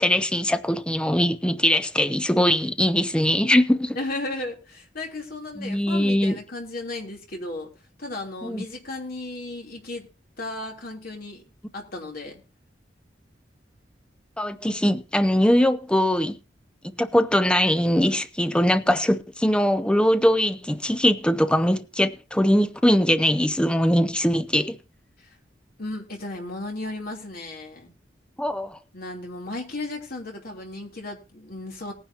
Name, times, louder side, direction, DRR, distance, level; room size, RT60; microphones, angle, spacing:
voice 1, 0.0-4.0 5.6-6.4 8.4-8.6 14.4-16.4 17.0-24.8 28.4-28.8, equal, 5° left, 0.5 m, -21 dB
voice 2, 3.9-7.7 8.0-10.1 10.4-11.4 11.7-12.4 25.8-27.9 28.9-31.9, left 2 dB, 55° left, 3.2 m, -34 dB
19.0 x 10.0 x 2.8 m
head